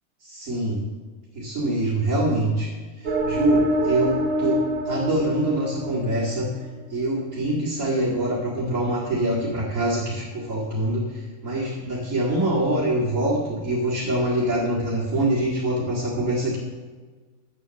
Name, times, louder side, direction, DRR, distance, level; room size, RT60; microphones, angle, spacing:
voice 1, 0.2-0.8 1.3-2.7 3.0-6.5 6.9-16.6, right 1 dB, 65° right, -6 dB, 2.8 m, -24 dB
sound 1, 3.1-6.6, equal, 50° right, 1.3 m, -26 dB
11.0 x 8.4 x 7.1 m, 1.4 s
omnidirectional pair, 1.4 m